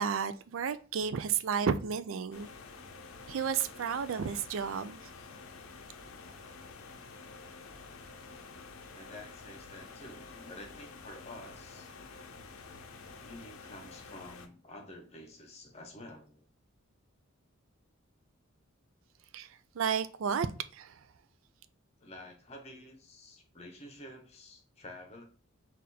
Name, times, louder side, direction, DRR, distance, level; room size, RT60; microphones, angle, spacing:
voice 1, 0.0-2.5 3.3-5.0 19.3-19.5 19.7-20.5 20.7-21.0, right 6 dB, 70° right, 0.4 m, -32 dB
sound 1, 2.3-14.5, left 4 dB, 85° left, 0.6 m, -49 dB
voice 2, 8.9-11.9 13.2-16.4 22.0-25.2, left 1 dB, 30° left, 0.8 m, -49 dB
4.2 x 2.5 x 4.0 m
head